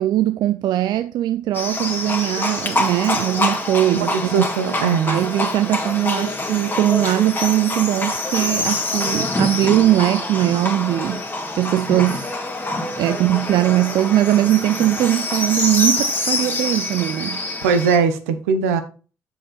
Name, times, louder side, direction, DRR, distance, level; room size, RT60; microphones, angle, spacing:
voice 1, 0.0-4.5 5.1-11.2 11.5-12.4 13.0-17.4, right 14 dB, 60° right, 0.4 m, -20 dB
Livestock farm animals working animals, 1.5-18.0, left 2 dB, 25° left, 1.9 m, -25 dB
voice 2, 3.9-5.2 17.6-18.8, right 5 dB, 80° right, 0.7 m, -20 dB
7.4 x 4.9 x 4.0 m
figure-of-eight pair, 45°, 8 cm